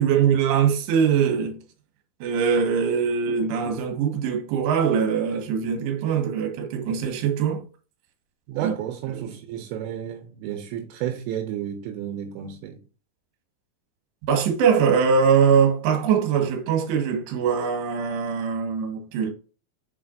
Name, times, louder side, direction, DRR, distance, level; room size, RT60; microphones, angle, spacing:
voice 1, 0.0-1.6 2.2-7.7 8.6-8.7 9.1-9.2 14.3-19.3, right 7 dB, 65° right, 3.3 m, -22 dB
voice 2, 8.5-12.8, right 10 dB, 85° right, 3.2 m, -32 dB
7.5 x 5.8 x 2.5 m
omnidirectional pair, 5.7 m